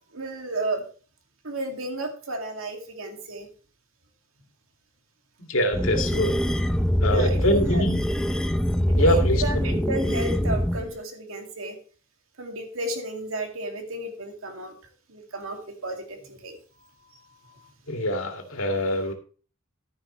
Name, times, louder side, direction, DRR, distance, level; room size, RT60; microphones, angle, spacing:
voice 1, 0.1-0.8 1.4-3.5 7.0-7.8 8.8-11.8 12.4-14.8 15.1-16.6 17.1-17.7, right 2 dB, 75° right, 4 dB, 2.4 m, -33 dB
voice 2, 5.5-6.3 7.0-8.0 9.0-9.4 17.9-19.1, equal, 70° left, 4 dB, 2.3 m, -24 dB
sound 1, 5.7-10.9, equal, 5° left, 0.7 m, -24 dB
13.0 x 10.0 x 3.2 m, 0.39 s
head